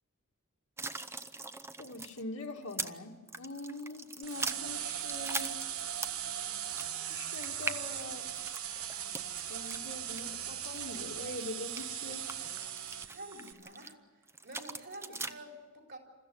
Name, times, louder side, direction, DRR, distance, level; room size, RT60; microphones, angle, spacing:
sound 1, 0.8-3.0 3.3-6.3 6.6-13.9 14.3-15.3, right 3 dB, 10° right, 0.7 m, -41 dB
voice 1, 1.8-3.1 3.4-5.5 7.0-8.3 9.5-12.5, left 2 dB, 75° left, -1 dB, 2.2 m, -43 dB
sound 2, 4.2-13.5, right 10 dB, 75° right, 1.2 m, -39 dB
voice 2, 13.0-14.0 14.4-16.0, right 1 dB, 50° right, 2 dB, 4.1 m, -48 dB
28.0 x 14.5 x 9.5 m, 1.4 s
head